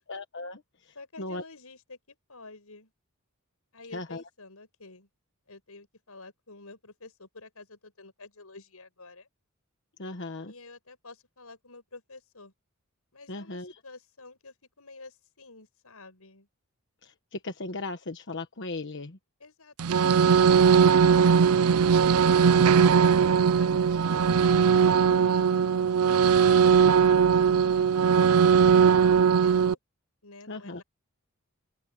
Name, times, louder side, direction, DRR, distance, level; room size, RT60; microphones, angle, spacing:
voice 1, 0.1-1.4 3.9-4.2 10.0-10.5 13.3-13.7 17.0-19.2 30.5-30.8, left 2 dB, 55° left, 1.2 m, -37 dB
voice 2, 0.9-2.9 3.7-5.1 5.5-9.3 10.5-12.5 13.1-16.5 19.4-22.5 22.8-25.6 26.0-26.6 27.0-29.8 30.2-30.8, left 3 dB, 90° left, 5.9 m, -50 dB
sound 1, 19.8-29.7, right 6 dB, 85° right, 0.5 m, -20 dB
open air
head